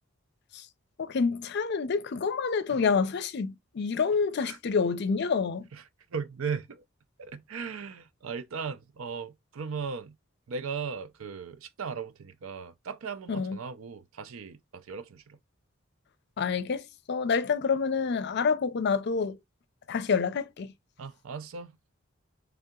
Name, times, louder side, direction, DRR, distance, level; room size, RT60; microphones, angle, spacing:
voice 1, 1.0-5.7 13.3-13.6 16.4-19.4 19.9-20.7, left 5 dB, 55° left, 0.4 m, -28 dB
voice 2, 5.7-6.8 7.2-10.2 10.5-15.4 21.0-21.8, right 5 dB, 85° right, 0.5 m, -37 dB
3.4 x 2.8 x 3.6 m
head